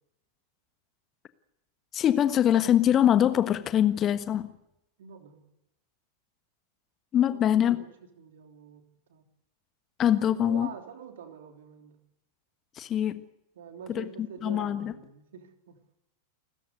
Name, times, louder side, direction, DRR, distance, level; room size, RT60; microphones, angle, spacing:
voice 1, 1.9-4.5 7.1-7.8 10.0-10.7 12.8-13.2 13.9-14.9, left 10 dB, 30° left, 1.4 m, -24 dB
voice 2, 5.0-5.5 7.3-7.9 8.2-8.8 9.1-9.2 10.3-12.0 13.5-15.8, right 7 dB, 60° right, 3.3 m, -46 dB
29.5 x 13.5 x 8.2 m
figure-of-eight pair, 90°, 0 cm